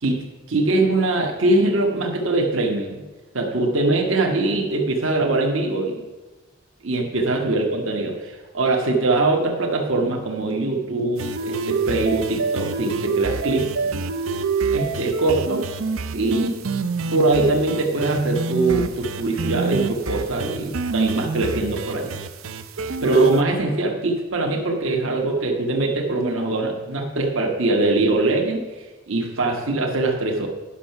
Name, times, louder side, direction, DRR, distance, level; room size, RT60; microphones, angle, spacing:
voice 1, 0.0-3.0 3.3-6.0 6.8-14.0 14.7-15.6 16.1-16.6 17.1-22.2 23.0-30.5, right 2 dB, 75° right, 1 dB, 1.3 m, -22 dB
sound 1, 11.2-23.4, right 4 dB, 90° right, 0.6 m, -27 dB
10.0 x 6.4 x 5.8 m, 1.2 s
head